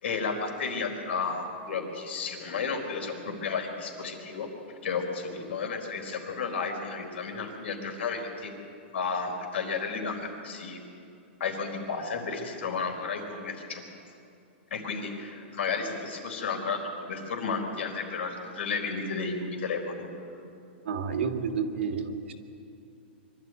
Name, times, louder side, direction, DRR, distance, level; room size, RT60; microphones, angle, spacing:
voice 1, 0.0-8.5 8.9-10.8 11.4-13.8 14.7-20.0, left 5 dB, 80° left, 3 dB, 4.3 m, -32 dB
voice 2, 20.8-22.3, right 6 dB, 80° right, 5 dB, 2.1 m, -30 dB
24.0 x 12.5 x 9.5 m, 2.6 s
supercardioid pair, 160°, 6 cm